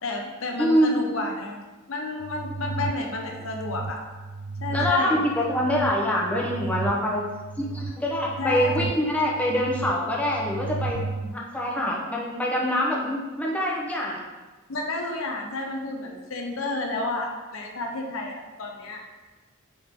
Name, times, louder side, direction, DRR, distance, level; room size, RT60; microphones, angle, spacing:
voice 1, 0.0-1.6 1.9-4.0 4.6-5.2 8.4-8.9 14.7-19.0, left 2 dB, 70° left, 2 dB, 0.9 m, -31 dB
voice 2, 0.6-1.0 4.7-7.2 7.6-14.2, equal, 5° left, -3 dB, 1.0 m, -25 dB
sound 1, 2.2-11.3, right 3 dB, 70° right, 0.3 m, -34 dB
8.1 x 3.8 x 3.7 m, 1.3 s
head